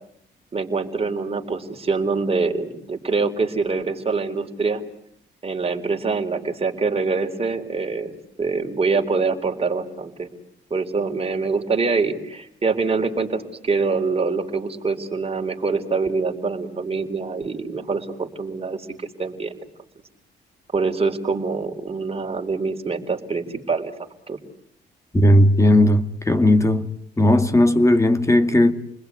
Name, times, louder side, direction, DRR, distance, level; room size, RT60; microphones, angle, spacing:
voice 1, 0.5-4.8 5.4-8.1 8.4-10.3 10.7-19.6 20.7-23.9 24.3-24.4, right 4 dB, 30° right, 4.2 m, -24 dB
voice 2, 25.1-26.9 27.2-28.7, left 1 dB, 15° left, 2.2 m, -16 dB
29.5 x 21.0 x 9.6 m
cardioid pair, 90°, 20 cm